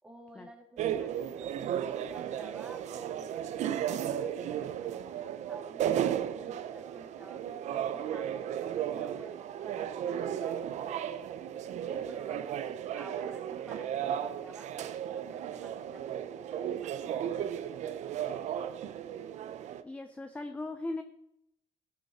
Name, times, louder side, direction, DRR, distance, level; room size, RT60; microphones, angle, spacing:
voice 1, 0.0-8.5 8.9-9.4 9.6-11.1 11.8-18.7, right 2 dB, 5° right, 0 dB, 2.7 m, -52 dB
sound 1, 0.8-19.8, right 10 dB, 60° right, 0.8 m, -35 dB
voice 2, 19.8-21.0, left 2 dB, 10° left, 8 dB, 0.7 m, -38 dB
17.0 x 8.7 x 4.3 m, 0.79 s
cardioid pair, 150°, 13 cm